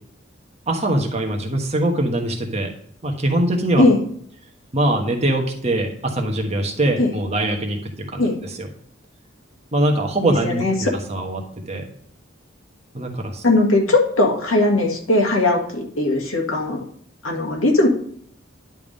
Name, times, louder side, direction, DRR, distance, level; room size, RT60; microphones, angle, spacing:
voice 1, 0.7-2.7 3.0-3.8 4.7-8.7 9.7-11.9 12.9-13.4, right 1 dB, 30° right, 2 dB, 1.2 m, -22 dB
voice 2, 10.4-10.9 13.4-16.8 17.2-17.9, left 2 dB, 85° left, 0 dB, 1.9 m, -19 dB
10.5 x 3.6 x 5.2 m, 0.63 s
head